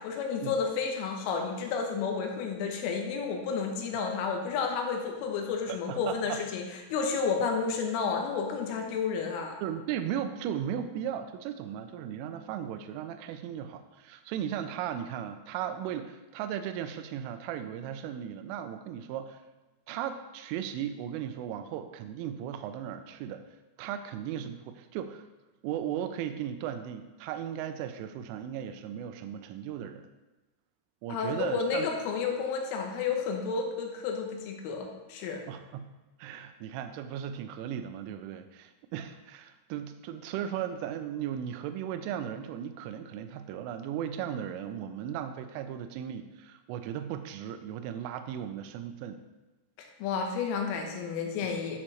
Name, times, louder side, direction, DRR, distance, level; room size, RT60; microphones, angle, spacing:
voice 1, 0.0-6.6 6.9-9.6 31.1-35.4 49.8-51.8, left 5 dB, 80° left, 2 dB, 3.5 m, -31 dB
voice 2, 5.7-6.4 9.6-19.4 19.9-23.4 23.8-25.2 25.6-30.1 31.0-31.9 35.5-35.9 36.2-49.2, right 9 dB, 85° right, 9 dB, 3.1 m, -36 dB
11.0 x 7.5 x 3.1 m, 1.1 s
omnidirectional pair, 5.8 m